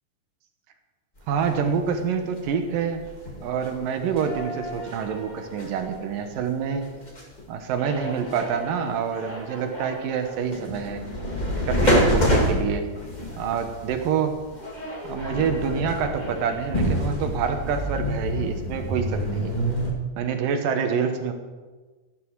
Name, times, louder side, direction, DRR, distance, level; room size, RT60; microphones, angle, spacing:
sound 1, 1.2-7.4 7.8-19.9, equal, 15° left, 1.5 m, -28 dB
voice 1, 1.3-3.0 3.4-6.8 7.5-11.1 11.7-13.0 13.4-14.4 15.1-19.5 20.2-21.3, right 6 dB, 80° right, 6 dB, 2.9 m, -27 dB
14.0 x 12.5 x 4.7 m, 1.3 s
omnidirectional pair, 3.8 m